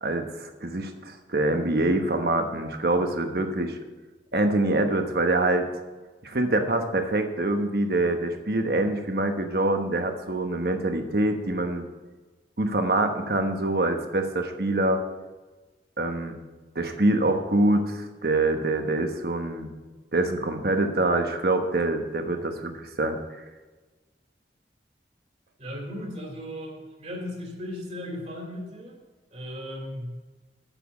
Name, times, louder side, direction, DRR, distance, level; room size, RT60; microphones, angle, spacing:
voice 1, 0.0-3.8 4.3-5.7 6.2-11.8 12.6-15.0 16.0-16.4 16.7-19.7 20.1-22.7 23.0-23.2, right 2 dB, 60° right, 5 dB, 1.1 m, -25 dB
voice 2, 25.6-29.0 29.3-30.1, equal, 40° right, 1 dB, 2.4 m, -36 dB
9.0 x 6.9 x 7.2 m, 1.2 s
head